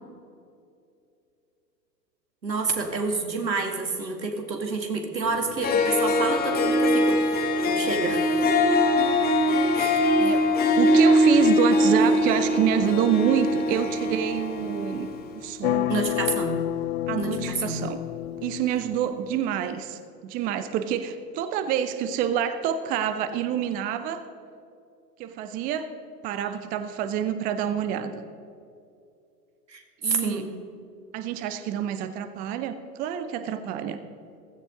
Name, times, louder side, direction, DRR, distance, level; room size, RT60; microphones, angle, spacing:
voice 1, 2.4-8.5 9.7-10.4 15.9-16.7 17.2-17.8 26.4-26.6 29.7-30.5, right 4 dB, 85° right, 4 dB, 2.2 m, -29 dB
Harp, 5.3-5.4 5.6-15.1, left 1 dB, 20° left, 1.5 m, -22 dB
voice 2, 10.2-15.9 17.1-18.0 18.4-24.2 25.2-25.9 26.2-28.3 30.0-30.5 31.1-34.0, right 9 dB, 20° right, 10 dB, 0.5 m, -27 dB
sound 1, 15.6-19.4, left 13 dB, 40° left, 0.4 m, -29 dB
16.0 x 15.0 x 3.8 m, 2.5 s
figure-of-eight pair, 100°, 50 cm